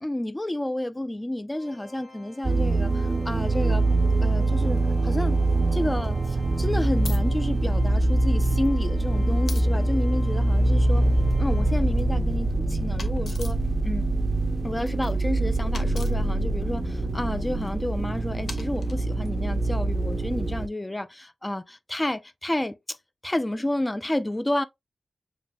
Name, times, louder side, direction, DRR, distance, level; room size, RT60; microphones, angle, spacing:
voice 1, 0.0-2.9 3.3-3.9 4.2-5.4 5.7-11.1 11.4-13.6 13.8-14.0 14.6-23.0 23.2-24.6, left 1 dB, 20° left, 0.4 m, -30 dB
Organ, 1.5-12.3, left 2 dB, 40° left, 3.5 m, -49 dB
sound 1, 2.4-20.7, right 2 dB, 45° right, 0.5 m, -24 dB
sound 2, 4.7-4.8 5.9-6.3 7.0-7.2 8.4-8.7 9.5-9.7 11.1-12.0 13.0-13.6 14.8-15.3 15.7-16.1 17.5-17.7 18.5-19.3, left 3 dB, 80° left, 0.9 m, -41 dB
7.1 x 3.0 x 2.2 m
wide cardioid pair, 75°, 0 cm